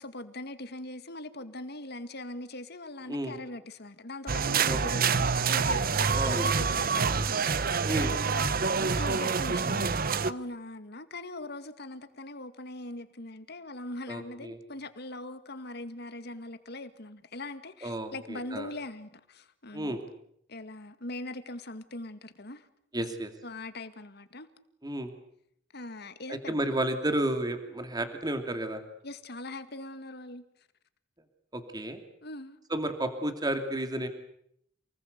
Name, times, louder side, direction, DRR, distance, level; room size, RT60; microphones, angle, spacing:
voice 1, 0.0-20.0 20.5-22.7 23.4-24.5 25.7-26.6 29.0-30.4 32.2-32.6, left 2 dB, 60° left, 2.1 m, -41 dB
sound 1, 4.3-10.3, right 5 dB, 50° right, 0.9 m, -27 dB
voice 2, 4.7-5.1 6.1-6.5 7.8-8.2 14.1-14.6 17.8-18.7 19.7-20.0 22.9-23.3 24.8-25.1 26.3-28.8 31.5-32.0 32.7-34.1, right 1 dB, 20° right, 2.7 m, -32 dB
28.5 x 20.0 x 8.2 m
head